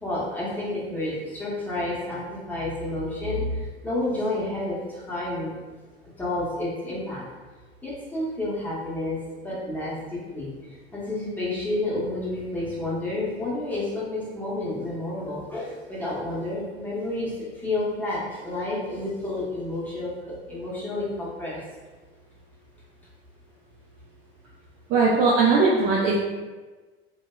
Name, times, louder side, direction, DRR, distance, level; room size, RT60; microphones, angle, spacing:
voice 1, 0.0-5.6 6.2-7.2 7.8-9.2 9.4-20.1 20.5-21.6, left 2 dB, 5° left, -8 dB, 0.8 m, -30 dB
voice 2, 24.9-26.2, right 4 dB, 30° right, -5 dB, 0.4 m, -19 dB
2.7 x 2.0 x 2.3 m, 1.3 s
figure-of-eight pair, 80°, 31 cm